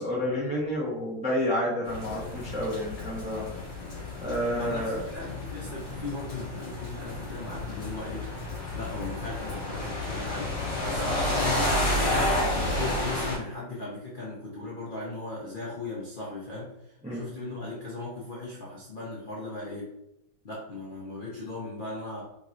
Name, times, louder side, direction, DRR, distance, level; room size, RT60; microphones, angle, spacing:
voice 1, 0.0-3.5 4.2-5.0 17.0-17.3, left 1 dB, 10° right, -5 dB, 0.4 m, -29 dB
sound 1, 1.9-13.4, left 1 dB, 45° left, 1.9 m, -31 dB
voice 2, 4.5-8.3 8.7-12.3 12.7-20.0 20.4-22.2, left 2 dB, 80° left, -6 dB, 0.4 m, -38 dB
4.3 x 3.7 x 2.5 m, 0.83 s
omnidirectional pair, 2.2 m